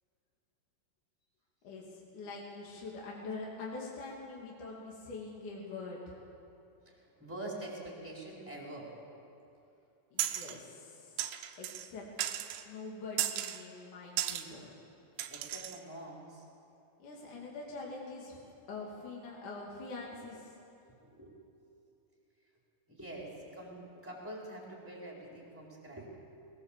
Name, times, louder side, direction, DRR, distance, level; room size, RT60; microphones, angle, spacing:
voice 1, 1.6-6.2 10.1-11.2 11.6-12.0 12.6-14.8 17.0-20.5, left 3 dB, 45° left, -3 dB, 3.3 m, -44 dB
voice 2, 6.8-9.2 15.3-16.5 21.0-21.4 22.9-26.1, right 1 dB, 5° right, -3 dB, 3.5 m, -45 dB
sound 1, 10.2-10.6 11.2-11.9 12.2-12.7 13.2-13.6 14.2-14.5 15.2-15.8, right 12 dB, 85° right, 3.5 m, -35 dB
21.0 x 20.0 x 7.4 m, 2.7 s
omnidirectional pair, 5.8 m